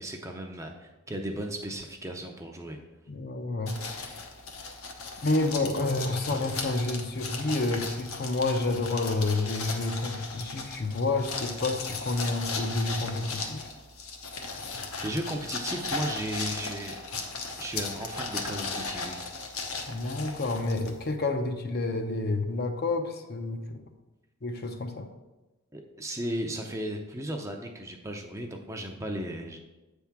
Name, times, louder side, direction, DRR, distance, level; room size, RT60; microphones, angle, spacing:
voice 1, 0.0-2.8 15.0-17.0 17.6-19.3 25.7-29.6, right 1 dB, 15° right, 2 dB, 0.5 m, -35 dB
voice 2, 3.1-4.3 5.2-13.6 19.9-23.8 24.4-25.1, left 2 dB, 45° left, 5 dB, 0.6 m, -29 dB
sound 1, 3.7-21.2, left 4 dB, 70° left, 1.0 m, -37 dB
8.2 x 3.5 x 5.8 m, 1.1 s
head